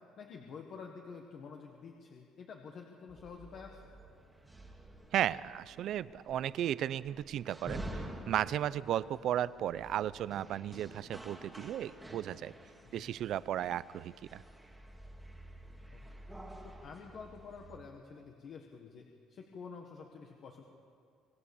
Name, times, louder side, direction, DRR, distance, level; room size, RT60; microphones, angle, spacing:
voice 1, 0.2-3.8 12.8-13.1 15.9-16.0 16.6-20.6, left 5 dB, 40° left, 2 dB, 1.5 m, -49 dB
sound 1, 3.1-17.8, right 1 dB, 5° right, 1.9 m, -49 dB
voice 2, 5.1-12.5 12.9-14.4, right 11 dB, 50° right, 17 dB, 0.5 m, -35 dB
26.5 x 20.0 x 7.1 m, 2.3 s
cardioid pair, 180°, 0 cm